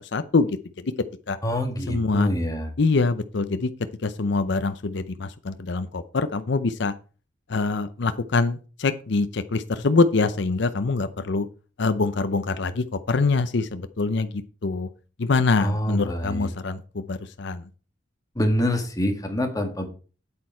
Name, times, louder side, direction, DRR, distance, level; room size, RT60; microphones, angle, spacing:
voice 1, 0.0-0.8 1.3-1.4 1.9-2.3 2.8-3.7 4.0-6.9 7.5-11.5 11.8-14.9 15.2-17.6, left 3 dB, 65° left, 10 dB, 0.6 m, -24 dB
voice 2, 1.4-2.7 15.6-16.5 18.4-19.9, equal, 20° left, 4 dB, 1.9 m, -26 dB
8.6 x 8.5 x 4.4 m, 0.37 s
head